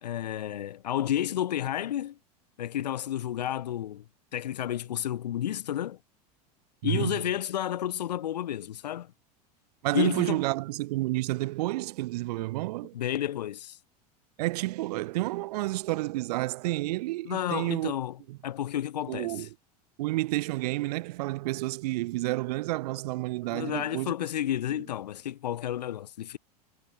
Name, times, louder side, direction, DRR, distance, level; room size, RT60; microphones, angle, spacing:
voice 1, 0.0-2.2 2.6-4.0 4.3-6.0 6.8-9.1 9.9-10.4 12.9-13.8 17.2-18.2 18.4-19.5 23.5-26.4, left 11 dB, 90° left, 4.5 m, -31 dB
voice 2, 6.8-7.2 9.8-12.9 14.4-17.9 18.3-18.4 19.1-19.5 20.0-24.1, right 19 dB, 75° right, 2.7 m, -30 dB
supercardioid pair, 110°, 20 cm